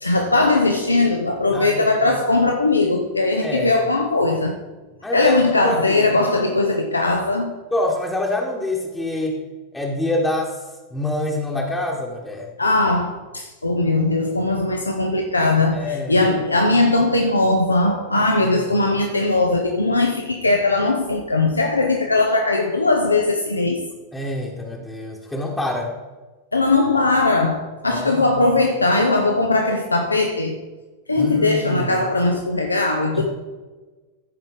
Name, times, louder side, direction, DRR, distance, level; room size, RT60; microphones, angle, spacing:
voice 1, 0.0-4.6 5.1-7.5 12.6-15.8 16.1-23.8 26.5-30.6 31.1-33.2, left 2 dB, 80° left, 0.7 m, -19 dB
voice 2, 1.5-2.1 3.4-3.7 5.0-5.4 5.6-6.1 7.7-9.5 9.7-10.6 10.9-12.5 15.7-16.2 24.1-25.9 27.9-28.4 31.2-32.0 33.1-33.2, left 1 dB, 5° left, 1.2 m, -26 dB
14.0 x 5.1 x 3.8 m
figure-of-eight pair, 90°, 0 cm